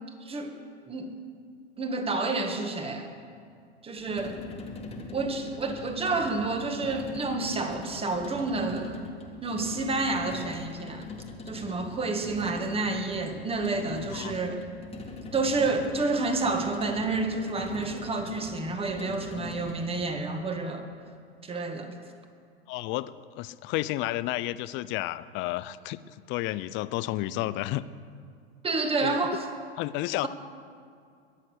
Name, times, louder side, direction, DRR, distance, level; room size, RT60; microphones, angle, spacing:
voice 1, 0.2-0.5 0.9-1.1 1.8-3.1 3.8-4.4 5.1-9.0 9.4-11.0 11.5-14.6 15.3-20.9 21.4-21.9 28.6-29.4, right 3 dB, 15° right, 5 dB, 1.9 m, -29 dB
sound 1, 4.0-20.1, left 3 dB, 20° left, 2.0 m, -41 dB
voice 2, 22.7-27.8 29.0-29.4 29.8-30.3, left 16 dB, 35° left, 16 dB, 0.6 m, -32 dB
22.0 x 7.7 x 6.5 m, 2.3 s
hypercardioid pair, 100°, 32 cm